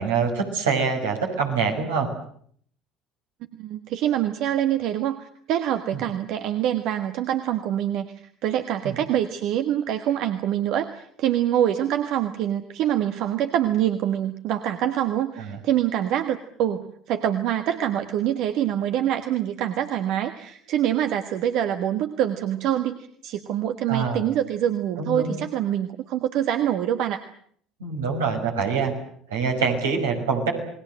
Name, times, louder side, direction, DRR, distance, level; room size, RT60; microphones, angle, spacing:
voice 1, 0.0-2.1 8.8-9.0 15.4-15.6 23.9-24.3 25.0-25.4 27.8-28.9 29.3-30.5, right 5 dB, 90° right, 0 dB, 6.0 m, -25 dB
voice 2, 3.5-27.2, right 11 dB, 65° right, 7 dB, 1.5 m, -25 dB
29.0 x 20.0 x 7.8 m, 0.62 s
hypercardioid pair, 70°, 0 cm